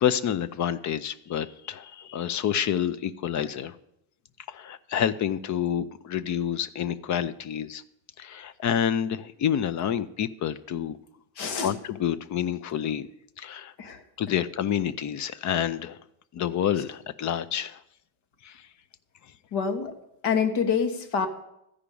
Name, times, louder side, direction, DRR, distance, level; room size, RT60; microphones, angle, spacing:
voice 1, 0.0-3.7 4.5-7.8 8.2-11.0 11.6-13.1 13.4-13.7 14.2-16.0 16.3-17.8 18.4-18.5, left 9 dB, 40° left, 15 dB, 0.5 m, -28 dB
voice 2, 11.4-11.7 13.8-14.0 19.5-19.9 20.2-21.3, left 6 dB, 60° left, 6 dB, 1.6 m, -26 dB
13.5 x 5.1 x 8.4 m, 0.81 s
cardioid pair, 155°, 45 cm